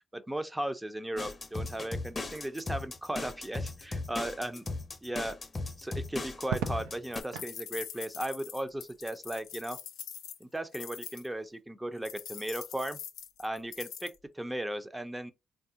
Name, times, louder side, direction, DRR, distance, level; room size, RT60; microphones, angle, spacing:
voice 1, 0.1-4.7 5.0-5.4 5.8-9.8 10.4-13.0 13.4-15.3, right 1 dB, 15° right, 0.5 m, -36 dB
sound 1, 1.2-7.2, left 3 dB, 40° left, 0.6 m, -37 dB
Crackle, 6.4-7.6 9.2-9.7, right 8 dB, 85° right, 0.4 m, -38 dB
sound 2, 7.1-11.3 12.1-14.2, left 9 dB, 80° left, 0.4 m, -44 dB
3.4 x 2.3 x 2.7 m
supercardioid pair, 50°, 0 cm